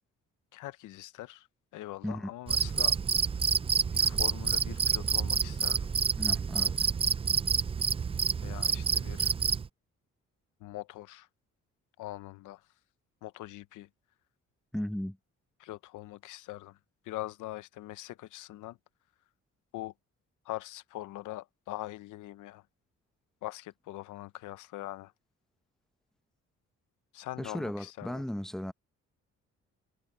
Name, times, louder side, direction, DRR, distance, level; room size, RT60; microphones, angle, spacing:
voice 1, 0.5-1.5 1.7-3.0 3.9-5.9 8.4-9.3 10.6-11.3 12.0-12.7 13.2-13.9 15.6-16.8 17.0-18.8 19.7-19.9 20.4-22.7 23.4-25.1 27.1-28.2, left 16 dB, 90° left, 0.9 m, -42 dB
Cricket, 2.5-9.7, right 6 dB, 20° right, 0.3 m, -28 dB
voice 2, 6.2-6.9 14.7-15.2 27.4-28.7, equal, ahead, 0.9 m, -36 dB
cardioid pair, 90°, 30 cm